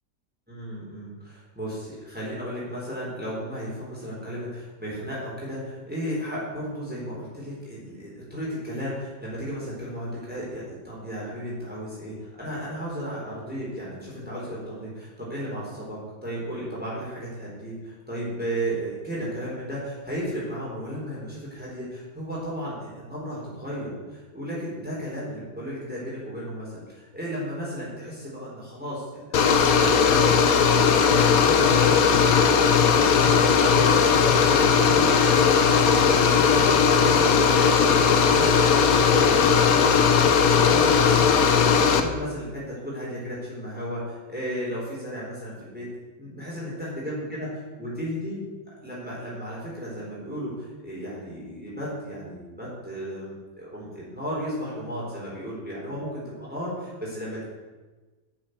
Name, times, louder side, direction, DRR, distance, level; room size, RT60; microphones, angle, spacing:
voice 1, 0.5-45.9 46.2-47.5 47.8-48.4 48.8-57.4, equal, 5° right, -7 dB, 4.2 m, -34 dB
sound 1, 29.3-42.0, left 6 dB, 60° left, 1.4 m, -18 dB
10.5 x 8.1 x 8.0 m, 1.3 s
omnidirectional pair, 1.8 m